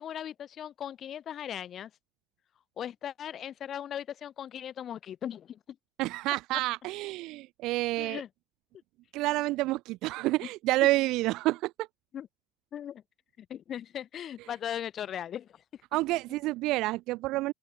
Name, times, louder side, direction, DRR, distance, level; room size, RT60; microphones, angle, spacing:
voice 1, 0.0-1.9 2.8-5.6 8.0-8.3 12.1-12.3 12.7-13.0 13.4-15.5, left 10 dB, 35° left, 2.2 m, -38 dB
voice 2, 6.0-8.2 9.1-11.9 15.9-17.5, right 19 dB, 65° right, 0.9 m, -29 dB
open air
cardioid pair, 150°, 0 cm